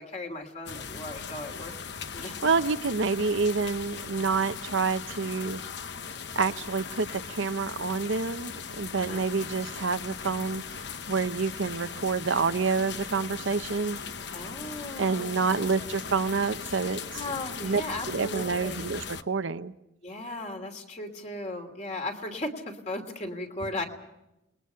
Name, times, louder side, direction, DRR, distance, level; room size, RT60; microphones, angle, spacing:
voice 1, 0.0-1.7 2.1-2.4 9.0-9.2 14.3-15.9 17.1-18.9 20.0-23.9, left 2 dB, 35° left, 4 dB, 2.8 m, -37 dB
sound 1, 0.7-19.2, left 6 dB, 60° left, 0.9 m, -39 dB
voice 2, 2.4-5.6 6.4-14.0 15.0-17.0 17.6-17.8 18.1-19.7, right 4 dB, 75° right, 11 dB, 0.8 m, -28 dB
29.0 x 21.0 x 5.7 m, 0.91 s
head